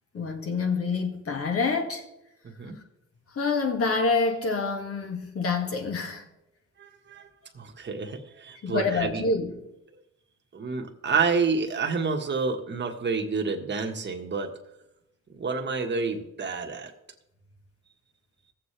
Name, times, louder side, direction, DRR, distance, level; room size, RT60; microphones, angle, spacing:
voice 1, 0.1-2.0 3.3-6.2 8.6-9.5, left 4 dB, 50° left, 2.2 m, -27 dB
voice 2, 2.4-2.8 6.8-7.3 7.5-9.2 10.5-14.5 15.3-16.9, right 4 dB, 35° right, 1.6 m, -29 dB
17.5 x 7.5 x 3.4 m
cardioid pair, 90°, 30 cm